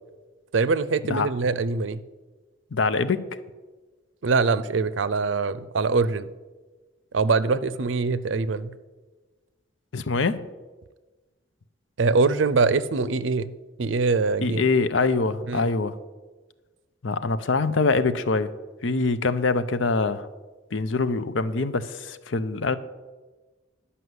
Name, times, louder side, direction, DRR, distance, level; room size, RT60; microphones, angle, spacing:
voice 1, 0.5-2.0 4.2-6.3 7.1-8.7 12.0-13.5 13.8-14.6 15.5-15.7, right 4 dB, 75° right, 16 dB, 0.5 m, -23 dB
voice 2, 2.7-3.2 9.9-10.4 14.4-16.0 17.0-18.5 18.8-20.3 20.7-22.8, left 3 dB, 80° left, 13 dB, 0.6 m, -24 dB
11.0 x 5.6 x 8.0 m, 1.3 s
head